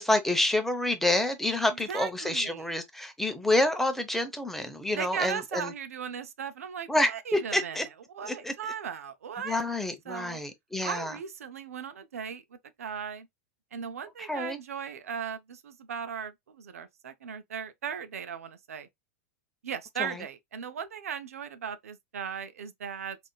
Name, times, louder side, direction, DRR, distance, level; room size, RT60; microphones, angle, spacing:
voice 1, 0.0-5.7 6.9-7.9 8.2-8.5 9.4-11.2 14.2-14.6 20.0-20.2, left 1 dB, 5° left, 0.7 m, -28 dB
voice 2, 1.7-2.7 4.9-7.8 8.1-9.6 10.1-10.4 10.8-12.4 12.8-13.3 13.7-18.9 19.6-23.2, right 7 dB, 90° right, 0.5 m, -37 dB
3.6 x 2.5 x 2.2 m
hypercardioid pair, 110°, 8 cm